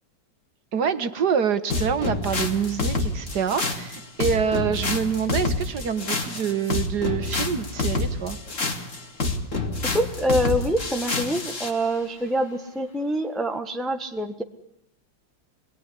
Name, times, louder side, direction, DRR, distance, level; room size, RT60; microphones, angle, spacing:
voice 1, 0.7-8.4, right 7 dB, 60° right, 1.9 m, -26 dB
sound 1, 1.7-11.8, left 3 dB, 40° left, 2.6 m, -27 dB
voice 2, 9.9-14.4, equal, ahead, 1.2 m, -25 dB
25.0 x 20.5 x 10.0 m
omnidirectional pair, 2.0 m